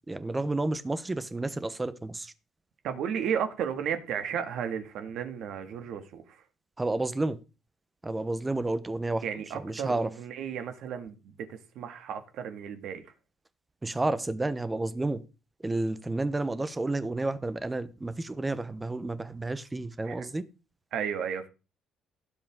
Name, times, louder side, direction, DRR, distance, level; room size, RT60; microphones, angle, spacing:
voice 1, 0.1-2.3 6.8-7.4 8.0-9.3 9.5-10.1 13.8-15.2 15.6-20.4, right 2 dB, 10° right, 0.9 m, -31 dB
voice 2, 2.8-6.2 9.2-13.0 20.0-20.3 20.9-21.5, right 8 dB, 60° right, 2.1 m, -34 dB
17.0 x 7.8 x 3.7 m
cardioid pair, 170°, 0 cm